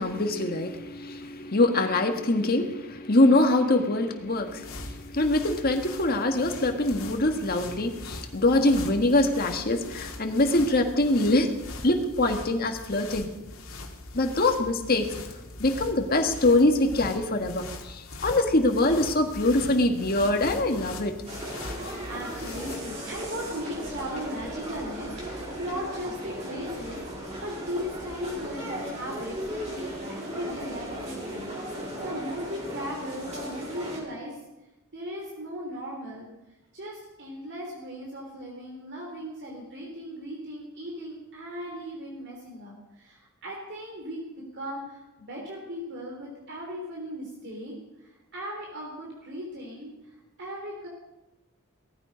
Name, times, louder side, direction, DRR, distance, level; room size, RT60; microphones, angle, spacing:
voice 1, 0.0-11.5 11.8-13.3 14.1-15.2 15.6-21.1, left 2 dB, 45° left, 5 dB, 1.8 m, -24 dB
sound 1, 4.2-23.0, left 2 dB, 70° left, 2.4 m, -41 dB
sound 2, 21.3-34.0, equal, 30° right, 5.0 m, -37 dB
voice 2, 21.8-34.4 34.9-36.3 36.7-50.1 50.4-50.9, equal, 55° right, -1 dB, 3.3 m, -37 dB
18.5 x 14.0 x 5.2 m, 0.98 s
head